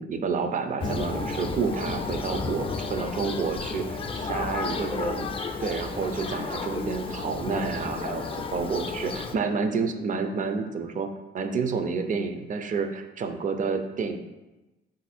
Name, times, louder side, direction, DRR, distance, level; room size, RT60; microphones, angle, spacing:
voice 1, 0.0-5.3 5.6-11.1 11.3-14.2, right 5 dB, 40° right, 7 dB, 0.4 m, -29 dB
Thunder, 0.8-9.4, left 4 dB, 30° left, 0.4 m, -32 dB
4.0 x 2.6 x 4.1 m, 1.1 s
cardioid pair, 90°, 20 cm